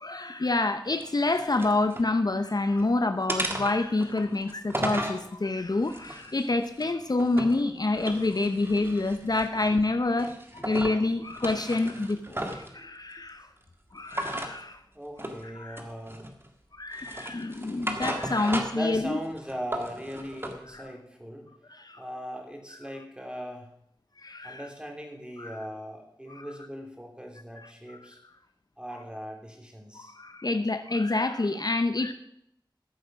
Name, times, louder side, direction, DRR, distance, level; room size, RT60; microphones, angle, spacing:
voice 1, 0.0-13.5 13.9-14.8 15.4-15.8 16.7-19.2 20.7-20.8 21.7-22.0 24.2-24.6 25.4-25.6 26.4-26.5 29.9-32.1, left 2 dB, 55° left, 9 dB, 0.8 m, -27 dB
sound 1, 0.9-2.1 2.5-2.9 3.3-5.2 5.8-7.6 7.9-9.8 10.2-11.0 11.3-12.7 14.1-14.5 15.2-15.4 15.8-16.5 16.9-18.9 19.2-20.6, right 1 dB, 30° right, 1.9 m, -35 dB
voice 2, 10.6-11.1 12.3-12.9 13.4-13.5 14.9-16.3 18.7-21.5 22.0-23.7 24.4-28.2 28.8-30.1, equal, 10° right, 2 dB, 3.3 m, -40 dB
14.0 x 7.9 x 6.2 m, 0.74 s
wide cardioid pair, 50°, 8 cm